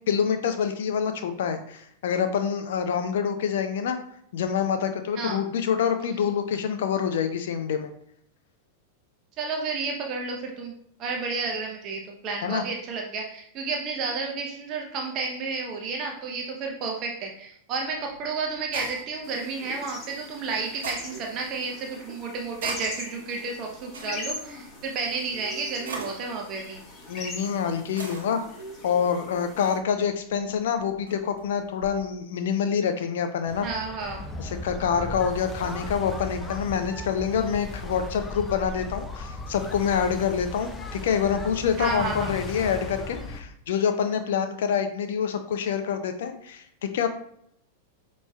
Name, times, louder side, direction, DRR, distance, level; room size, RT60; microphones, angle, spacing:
voice 1, 0.1-4.0 4.3-7.9 12.4-12.6 27.1-28.5 28.8-33.7 34.4-47.1, left 7 dB, 70° left, 8 dB, 0.4 m, -26 dB
voice 2, 9.4-10.7 11.0-26.8 33.6-34.2 41.8-42.3, right 4 dB, 40° right, 1 dB, 0.7 m, -31 dB
sound 1, 17.8-32.0, right 3 dB, 80° right, 0.9 m, -44 dB
sound 2, 19.2-29.8, left 2 dB, 35° left, 1.2 m, -42 dB
sound 3, 33.5-43.4, left 2 dB, 20° left, 0.6 m, -37 dB
5.3 x 3.0 x 2.3 m, 0.69 s
hypercardioid pair, 100°, 0 cm